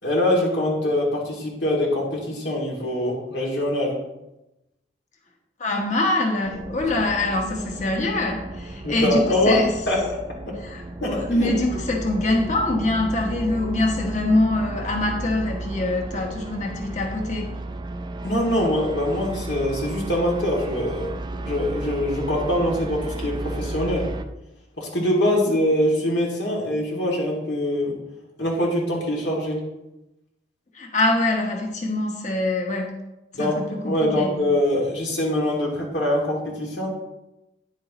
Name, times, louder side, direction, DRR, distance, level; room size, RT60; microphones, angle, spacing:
voice 1, 0.0-4.0 8.8-10.0 11.0-11.5 18.2-24.1 24.8-27.9 28.4-29.6 33.3-36.9, left 1 dB, 80° left, -3 dB, 2.6 m, -23 dB
voice 2, 5.6-9.7 10.6-17.5 30.7-32.9 33.4-34.3, left 2 dB, 45° left, 1 dB, 1.3 m, -24 dB
sound 1, 6.4-24.2, right 2 dB, 25° right, 0.4 m, -34 dB
10.0 x 7.4 x 3.0 m, 0.94 s
head